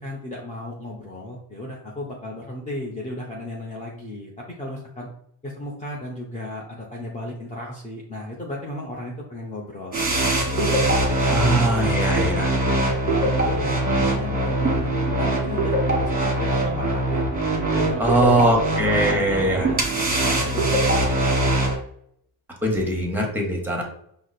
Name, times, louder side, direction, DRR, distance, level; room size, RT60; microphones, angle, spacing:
voice 1, 0.0-5.1 5.4-10.0 10.5-14.9 15.2-18.5 18.9-21.3, left 1 dB, 20° left, -3 dB, 0.8 m, -35 dB
sound 1, 9.9-21.8, right 1 dB, 20° right, 1.4 m, -22 dB
voice 2, 11.3-12.5 18.0-19.7 22.6-23.8, right 1 dB, 5° right, 0 dB, 1.4 m, -21 dB
4.7 x 2.1 x 4.2 m, 0.68 s
cardioid pair, 100°, 40 cm